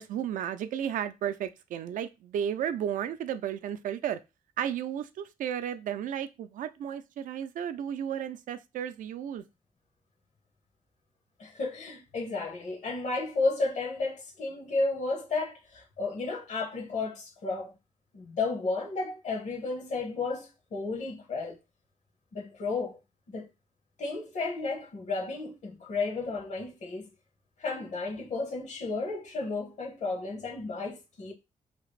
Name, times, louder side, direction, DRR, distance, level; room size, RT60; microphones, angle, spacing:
voice 1, 0.0-4.2 4.6-9.4, right 9 dB, 90° right, 0.4 m, -33 dB
voice 2, 11.4-17.7 18.1-21.6 22.3-23.0 23.3-23.5 24.0-27.1 27.6-31.3, left 3 dB, 65° left, 1.0 m, -33 dB
2.9 x 2.4 x 3.2 m
cardioid pair, 110°, 13 cm